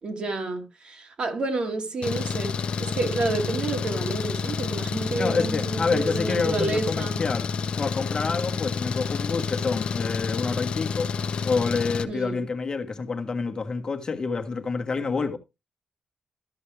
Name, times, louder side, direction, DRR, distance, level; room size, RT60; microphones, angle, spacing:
voice 1, 0.0-7.2 12.1-12.4, right 2 dB, 50° right, 2.5 m, -30 dB
Engine, 2.0-12.0, left 5 dB, 55° left, 0.9 m, -29 dB
voice 2, 5.1-11.1 11.4-15.4, left 4 dB, 35° left, 1.5 m, -28 dB
13.0 x 6.4 x 3.4 m
cardioid pair, 105°, 2 cm